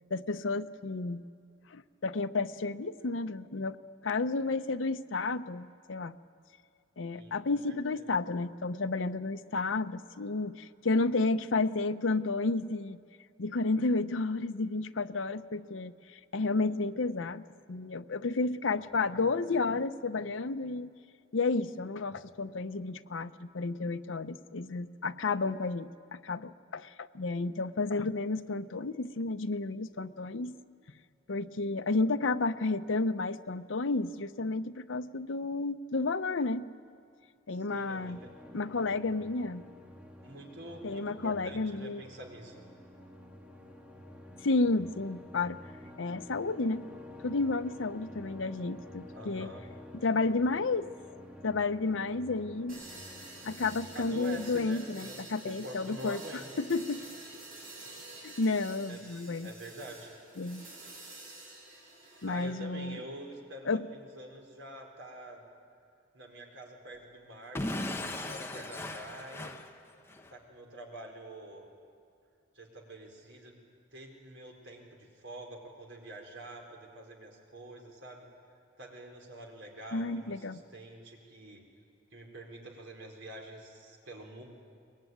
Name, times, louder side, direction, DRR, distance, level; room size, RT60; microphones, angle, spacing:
voice 1, 0.1-1.2 1.7-3.8 4.0-6.1 7.0-13.0 13.4-20.9 21.3-30.5 31.3-36.7 37.5-38.2 38.5-39.6 40.8-42.0 44.4-45.6 46.0-46.9 47.2-49.5 49.9-50.9 51.4-52.8 53.4-56.2 56.6-57.0 58.2-59.5 60.4-60.7 62.2-63.0 63.7-63.9 79.9-80.6, left 3 dB, 80° left, 11 dB, 0.7 m, -31 dB
voice 2, 7.1-8.1 37.5-38.3 40.2-42.6 49.1-49.7 53.9-55.2 55.4-56.5 58.9-59.0 59.4-60.2 62.3-65.4 66.1-69.6 70.3-71.6 72.5-73.7 73.9-78.3 78.8-81.6 82.1-84.4, right 1 dB, 75° right, 1 dB, 4.3 m, -46 dB
sound 1, 38.0-54.8, left 1 dB, 5° right, 1.8 m, -50 dB
sound 2, 52.7-62.5, right 2 dB, 45° right, 7.3 m, -49 dB
Explosion / Shatter, 67.6-70.3, left 1 dB, 15° left, 1.0 m, -37 dB
22.5 x 21.0 x 9.4 m, 2.3 s
head